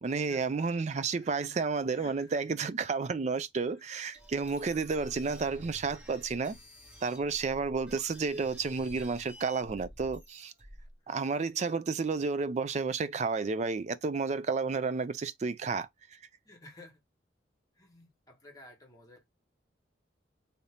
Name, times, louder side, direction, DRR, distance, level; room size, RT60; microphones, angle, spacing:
voice 1, 0.0-6.6 7.0-10.5 11.1-15.9, right 4 dB, 40° right, 0.4 m, -31 dB
voice 2, 0.9-1.3 1.9-2.4 3.8-3.9 4.7-4.9 9.0-9.2 10.8-11.2 14.3-14.4 16.4-17.0 17.7-19.2, left 2 dB, 20° left, 1.1 m, -54 dB
sound 1, 4.1-10.9, equal, 10° right, 1.0 m, -50 dB
2.7 x 2.7 x 3.2 m
head